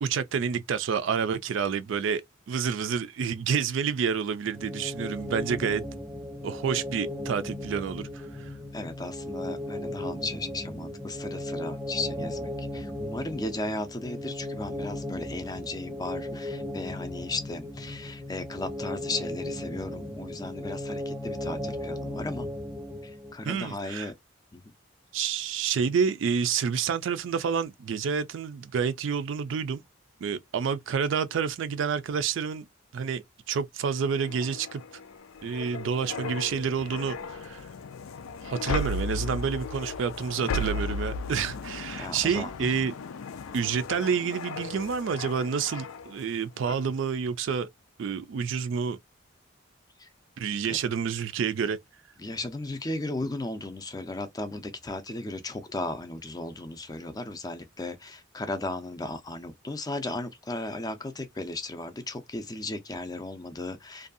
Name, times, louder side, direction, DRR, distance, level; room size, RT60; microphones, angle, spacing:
voice 1, 0.0-5.8 6.4-8.5 23.4-24.1 25.1-29.8 30.2-32.7 32.9-34.8 35.4-37.7 38.4-42.9 43.5-47.7 48.0-49.0 50.4-51.8, right 6 dB, 60° right, 0.3 m, -29 dB
sound 1, 4.5-23.3, left 1 dB, 5° right, 0.8 m, -36 dB
voice 2, 8.7-22.5 23.0-24.1 24.5-24.6 42.0-42.7 50.0-50.1 52.2-64.1, left 2 dB, 20° left, 0.4 m, -36 dB
sound 2, 34.0-46.3 46.7-46.9, left 3 dB, 85° left, 0.4 m, -36 dB
2.6 x 2.3 x 2.5 m
head